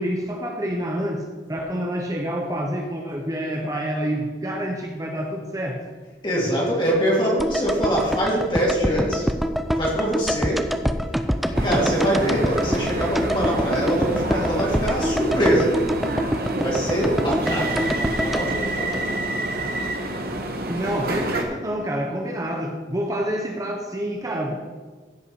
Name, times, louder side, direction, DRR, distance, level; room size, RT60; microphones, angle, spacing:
voice 1, 0.0-5.8 17.4-18.2 20.7-24.5, equal, 20° right, 1 dB, 0.9 m, -28 dB
voice 2, 6.2-9.3 9.7-10.7 11.5-15.8 16.6-19.1, equal, 25° left, -4 dB, 2.7 m, -24 dB
sound 1, 7.4-19.6 19.8-19.9, equal, ahead, 0.4 m, -26 dB
sound 2, 11.5-21.4, right 1 dB, 55° right, 1.2 m, -27 dB
15.5 x 5.5 x 4.8 m, 1.4 s
head